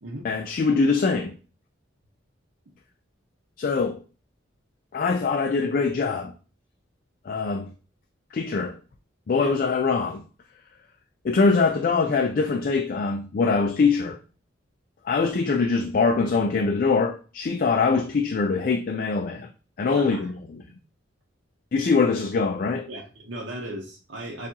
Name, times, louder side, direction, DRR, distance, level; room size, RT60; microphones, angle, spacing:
voice 1, 0.2-1.3 3.6-4.0 4.9-6.3 7.3-7.7 8.3-8.8 9.3-10.2 11.2-14.2 15.0-19.5 19.8-20.3 21.7-22.9, left 4 dB, 45° left, 0.4 m, -23 dB
voice 2, 19.9-20.3 22.9-24.5, right 1 dB, 65° right, 0.8 m, -36 dB
6.9 x 2.4 x 2.8 m
head